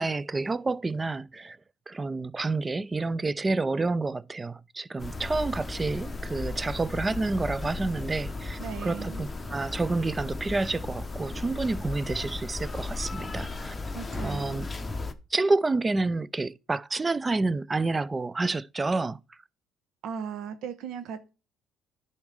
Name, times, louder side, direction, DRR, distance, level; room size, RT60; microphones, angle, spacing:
voice 1, 0.0-1.6 1.9-13.8 14.2-14.7 15.3-19.2, right 3 dB, 20° right, 0.3 m, -29 dB
sound 1, 5.0-15.1, left 3 dB, 20° left, 0.8 m, -35 dB
voice 2, 8.6-9.2 13.9-14.6 20.0-21.3, right 7 dB, 70° right, 1.0 m, -37 dB
10.5 x 4.2 x 4.8 m
cardioid pair, 100°, 0 cm